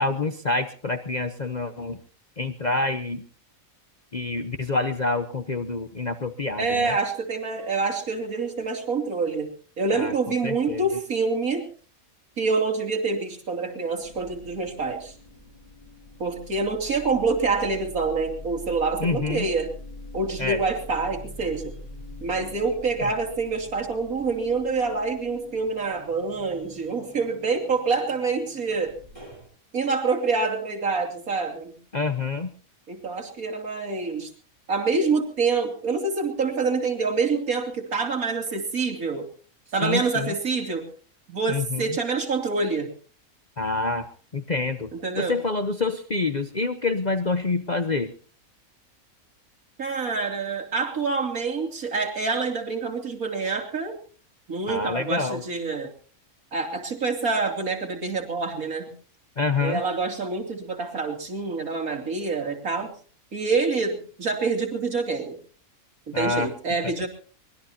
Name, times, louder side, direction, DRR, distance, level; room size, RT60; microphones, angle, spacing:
voice 1, 0.0-2.0 2.4-3.3 4.1-7.0 9.9-10.1 10.4-10.9 19.0-19.5 20.4-20.6 23.0-23.1 31.9-32.5 39.8-40.3 41.5-42.0 43.6-44.1 44.3-48.1 54.7-55.4 59.4-59.8 66.1-66.5, left 3 dB, 35° left, 9 dB, 0.9 m, -27 dB
voice 2, 6.6-9.5 9.8-11.7 12.4-15.1 16.2-19.7 20.1-21.7 22.2-28.9 29.7-31.7 32.9-34.3 34.7-39.3 39.7-40.9 41.3-42.9 44.9-45.4 49.8-54.0 54.5-55.9 56.5-58.9 59.6-62.9 63.3-65.4 66.1-67.1, right 4 dB, 80° right, 2 dB, 3.5 m, -26 dB
sound 1, 13.8-29.5, left 1 dB, 20° right, 6.9 m, -44 dB
23.5 x 20.0 x 2.9 m, 0.41 s
omnidirectional pair, 1.5 m